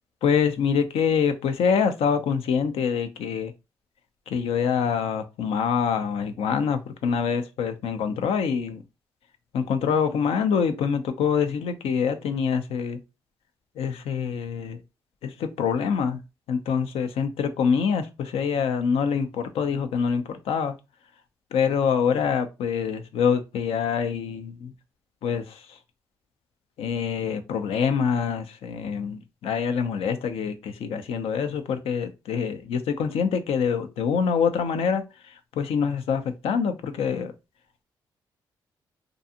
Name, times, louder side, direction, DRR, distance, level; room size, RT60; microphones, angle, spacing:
voice 1, 0.2-3.5 4.3-8.8 9.5-13.0 13.8-14.8 15.2-16.2 16.5-20.7 21.5-24.7 25.2-25.8 26.8-37.3, left 6 dB, 75° left, 0.5 m, -25 dB
2.5 x 2.3 x 2.7 m
supercardioid pair, 55°, 10 cm